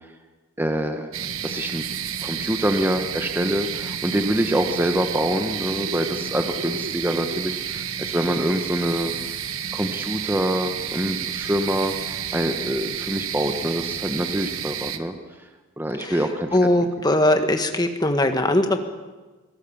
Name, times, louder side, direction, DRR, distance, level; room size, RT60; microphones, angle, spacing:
voice 1, 0.6-1.1 1.4-1.8 2.2-9.1 9.7-15.1 15.8-16.6, right 1 dB, 10° right, 6 dB, 1.0 m, -25 dB
sound 1, 1.1-15.0, right 8 dB, 75° right, 1.3 m, -30 dB
voice 2, 16.5-18.8, left 1 dB, 20° left, 6 dB, 1.5 m, -20 dB
24.0 x 18.0 x 7.1 m, 1.3 s
head